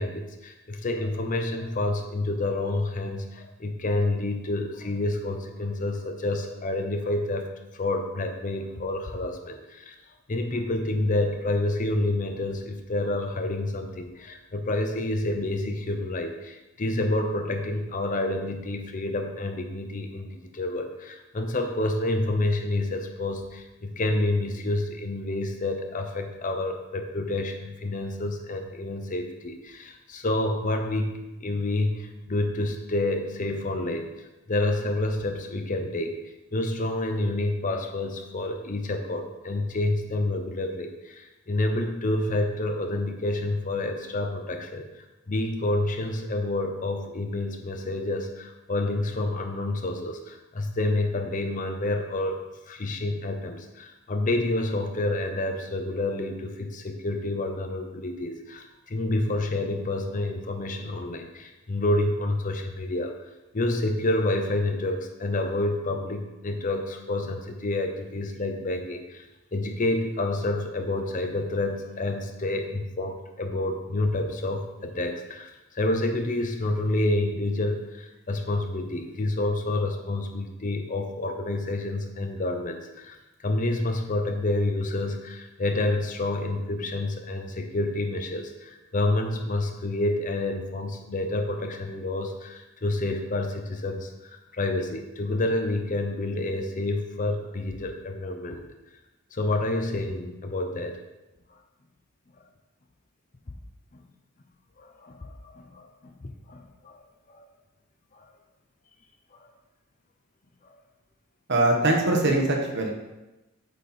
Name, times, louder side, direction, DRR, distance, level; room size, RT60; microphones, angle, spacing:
voice 1, 0.0-9.9 10.3-36.2 36.5-52.4 52.7-63.1 63.5-98.6 99.3-101.0 103.9-104.0 104.8-106.1 106.5-107.0 107.3-107.4 108.1-108.3 109.3-109.5 110.6-110.7, left 2 dB, 35° left, 5 dB, 0.6 m, -28 dB
voice 2, 111.5-112.9, right 2 dB, 50° right, 1 dB, 1.2 m, -22 dB
8.1 x 4.2 x 4.4 m, 1.0 s
head